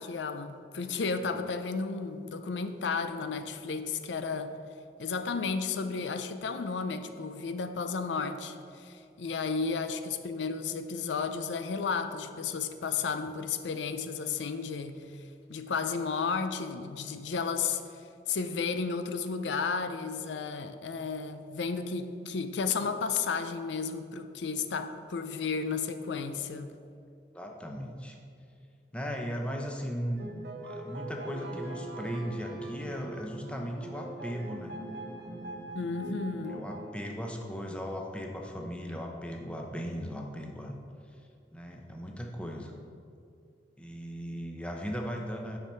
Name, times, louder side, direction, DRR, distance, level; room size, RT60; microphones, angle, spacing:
voice 1, 0.0-4.6 5.0-18.0 18.3-26.8 35.7-36.6, left 5 dB, 90° left, 9 dB, 0.5 m, -33 dB
voice 2, 27.3-28.2 28.9-34.8 36.5-40.8 41.5-42.7 43.8-45.6, equal, 5° left, 1 dB, 0.7 m, -37 dB
sound 1, 30.2-36.9, right 2 dB, 75° right, 1.1 m, -41 dB
9.4 x 5.7 x 4.4 m, 2.4 s
head